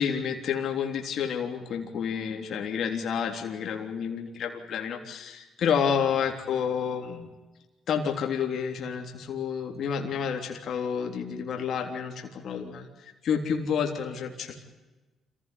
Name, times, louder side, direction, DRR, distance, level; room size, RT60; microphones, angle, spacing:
voice 1, 0.0-7.3 7.9-14.6, left 7 dB, 65° left, 3 dB, 3.5 m, -30 dB
27.0 x 16.0 x 10.0 m, 1.2 s
cardioid pair, 90°, 0 cm